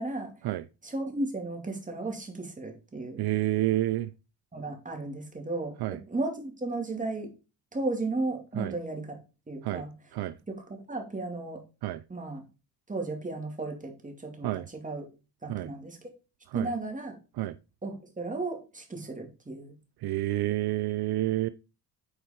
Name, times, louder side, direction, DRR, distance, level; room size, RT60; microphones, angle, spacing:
voice 1, 0.0-0.3 0.8-3.2 4.5-5.7 6.1-7.3 7.7-9.1 9.5-9.9 10.5-10.6 10.9-11.6 12.1-12.4 12.9-15.1 15.4-16.0 16.5-17.2 17.8-19.7, right 2 dB, 20° right, 2.4 m, -34 dB
voice 2, 3.2-4.1 5.8-6.0 8.5-8.7 9.6-9.8 10.1-10.3 11.8-12.0 14.4-14.6 15.5-15.7 16.5-16.7 17.4-17.6 20.0-21.5, right 15 dB, 75° right, 0.5 m, -29 dB
8.4 x 4.6 x 4.3 m
cardioid pair, 95°, 39 cm